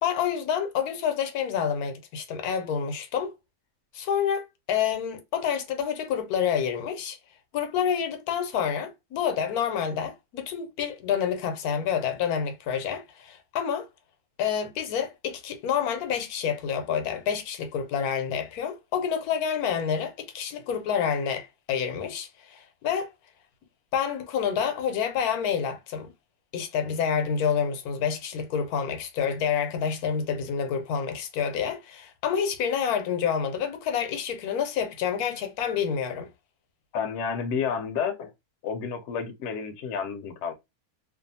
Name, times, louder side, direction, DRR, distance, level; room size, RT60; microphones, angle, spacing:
voice 1, 0.0-3.3 3.9-7.2 7.5-13.9 14.4-23.1 23.9-26.1 26.5-36.3, left 7 dB, 85° left, 1.1 m, -28 dB
voice 2, 36.9-38.3 38.6-40.5, left 6 dB, 65° left, 0.7 m, -30 dB
2.6 x 2.3 x 2.6 m
omnidirectional pair, 1.6 m